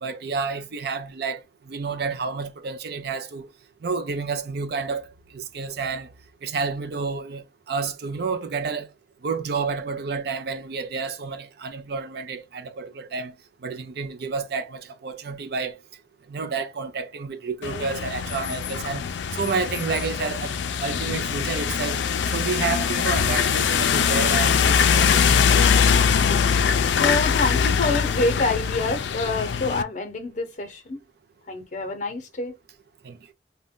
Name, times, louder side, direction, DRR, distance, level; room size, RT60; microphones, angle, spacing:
voice 1, 0.0-3.5 3.8-6.1 6.4-8.9 9.2-13.4 13.6-15.8 16.3-22.0 22.3-25.5 33.0-33.2, right 4 dB, 60° right, 0.4 m, -30 dB
sound 1, 17.6-29.8, left 7 dB, 80° left, 0.4 m, -22 dB
voice 2, 26.0-26.7 27.0-31.0 31.5-32.5, left 3 dB, 45° left, 0.8 m, -27 dB
2.5 x 2.2 x 3.5 m
head